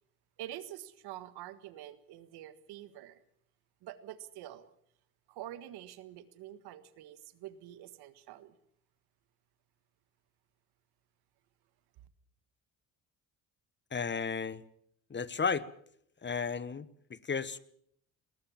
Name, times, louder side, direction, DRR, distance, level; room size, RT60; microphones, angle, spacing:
voice 1, 0.4-3.2 3.8-4.7 5.3-8.5, right 13 dB, 80° right, 13 dB, 1.7 m, -46 dB
voice 2, 13.9-14.6 15.1-15.7 16.2-17.6, left 5 dB, 30° left, 17 dB, 1.3 m, -34 dB
20.0 x 19.5 x 7.2 m, 0.69 s
supercardioid pair, 70°, 38 cm